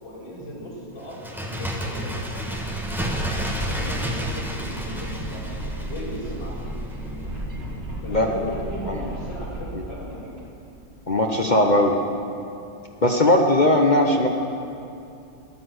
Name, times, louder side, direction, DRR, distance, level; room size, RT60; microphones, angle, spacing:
voice 1, 0.0-2.1 2.4-2.6 3.0-5.4 5.9-6.6 8.0-10.4, equal, 90° left, -7 dB, 4.9 m, -37 dB
Bird, 1.1-6.6 6.9-7.0, equal, ahead, 1.1 m, -31 dB
sound 1, 2.3-10.6, right 1 dB, 70° right, 3.4 m, -35 dB
sound 2, 2.4-8.6, left 1 dB, 15° left, 4.6 m, -41 dB
voice 2, 11.1-12.0 13.0-14.3, left 1 dB, 40° left, 2 dB, 0.6 m, -18 dB
13.5 x 10.0 x 7.9 m, 2.6 s
omnidirectional pair, 1.9 m